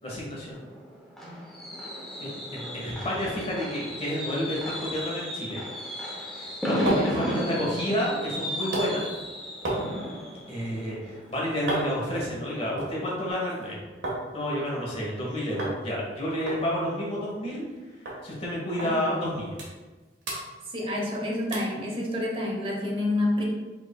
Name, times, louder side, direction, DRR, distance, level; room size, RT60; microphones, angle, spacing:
voice 1, 0.0-0.6 2.2-5.6 6.4-9.1 10.5-13.8 14.3-17.6 18.2-19.6, equal, 35° left, -4 dB, 1.4 m, -30 dB
Fireworks, 0.5-12.2 12.6-12.9 13.1-13.2, equal, ahead, 0.7 m, -34 dB
sound 1, 6.3-14.2 14.5-15.2 15.6-15.8 16.1-16.2 16.5-17.8 18.1-18.2 18.8-18.9 19.3-20.0 20.2-21.1 21.5-21.8 22.3-22.4, right 1 dB, 85° right, 1.4 m, -35 dB
voice 2, 18.8-19.2 20.7-23.4, left 1 dB, 30° right, -2 dB, 0.9 m, -29 dB
5.2 x 3.8 x 2.2 m, 1.3 s
head